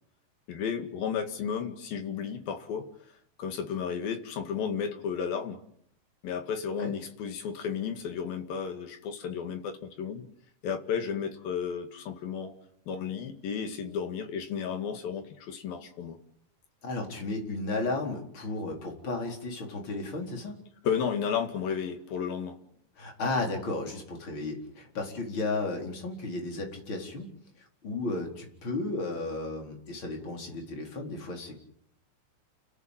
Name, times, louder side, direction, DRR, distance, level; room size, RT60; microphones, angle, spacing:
voice 1, 0.5-2.9 3.4-5.6 6.2-10.3 10.6-12.5 12.9-16.2 20.8-22.6, left 7 dB, 55° left, 6 dB, 3.8 m, -33 dB
voice 2, 16.8-20.5 23.0-27.3 27.8-31.6, left 2 dB, 25° left, 2 dB, 4.8 m, -34 dB
29.5 x 15.0 x 9.2 m, 0.70 s
omnidirectional pair, 5.2 m